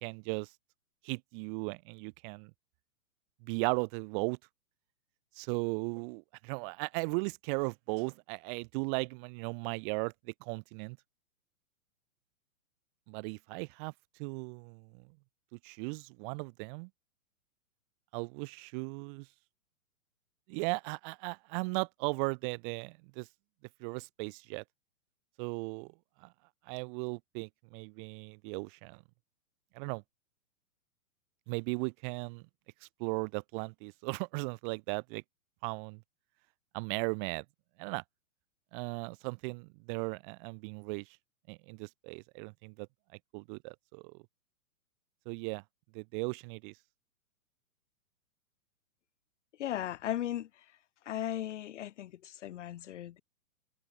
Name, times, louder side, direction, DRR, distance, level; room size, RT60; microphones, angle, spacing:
voice 1, 0.0-0.5 1.0-2.5 3.4-4.4 5.4-11.0 13.1-13.9 14.2-15.0 15.5-16.9 18.1-19.3 20.5-23.3 23.8-24.6 25.4-25.9 26.2-26.3 26.7-29.0 29.7-30.0 31.5-32.4 32.8-35.2 35.6-36.0 36.7-37.4 37.8-38.0 38.7-41.1 41.5-42.9 43.3-44.2 45.2-45.6 45.9-46.7, right 33 dB, 35° right, 2.9 m, -37 dB
voice 2, 49.6-50.5 51.0-53.2, left 12 dB, 55° left, 3.2 m, -37 dB
figure-of-eight pair, 115°, 43 cm